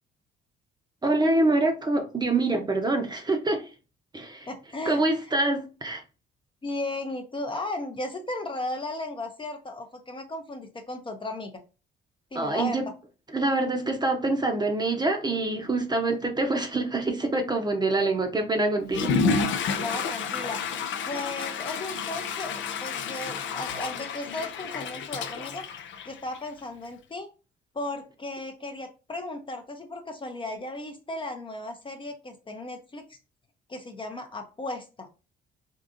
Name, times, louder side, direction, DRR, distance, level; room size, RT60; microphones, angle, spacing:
voice 1, 1.0-3.7 4.1-4.5 4.9-6.0 12.3-12.9 13.3-19.5, right 2 dB, 20° right, 0.7 m, -25 dB
voice 2, 4.5-5.3 6.6-11.5 12.3-12.9 19.7-20.7 21.1-25.7 26.0-27.3 27.7-33.2 33.7-35.1, left 2 dB, 25° left, 0.6 m, -35 dB
Water / Toilet flush, 18.8-26.6, left 5 dB, 70° left, 0.5 m, -30 dB
3.7 x 2.5 x 2.5 m
cardioid pair, 90°, 20 cm